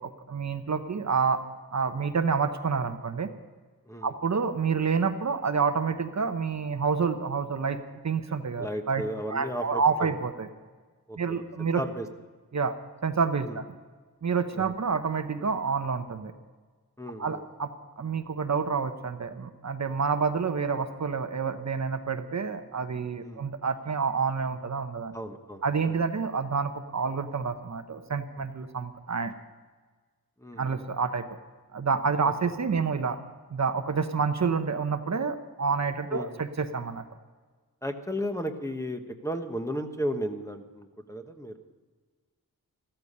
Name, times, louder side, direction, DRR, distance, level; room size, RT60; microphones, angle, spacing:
voice 1, 0.0-1.4 1.7-3.3 4.0-7.8 8.0-9.0 9.3-10.5 11.2-11.8 12.5-12.7 13.0-13.6 14.2-16.3 17.2-25.1 25.6-29.3 30.6-31.2 31.7-33.2 33.5-37.0, right 5 dB, 50° right, 8 dB, 0.9 m, -28 dB
voice 2, 8.6-10.1 11.1-12.1 13.4-13.6 14.5-14.6 17.0-17.4 23.2-23.4 25.1-26.0 30.4-30.8 36.1-36.4 37.8-41.6, equal, 10° left, 5 dB, 1.0 m, -35 dB
14.5 x 13.0 x 5.4 m, 1.4 s
wide cardioid pair, 120°, 36 cm